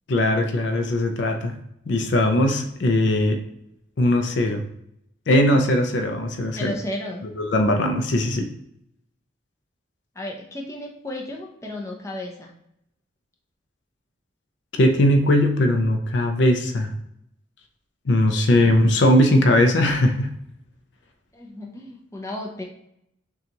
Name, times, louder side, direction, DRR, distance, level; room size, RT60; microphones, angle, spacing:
voice 1, 0.1-1.5 1.9-3.4 4.0-4.6 5.3-6.7 7.4-8.5 14.8-16.9 18.1-20.3, left 1 dB, 60° left, 5 dB, 0.5 m, -19 dB
voice 2, 6.6-7.3 10.2-12.5 21.3-22.6, left 1 dB, 15° left, -1 dB, 0.6 m, -33 dB
6.4 x 2.4 x 2.9 m, 0.77 s
head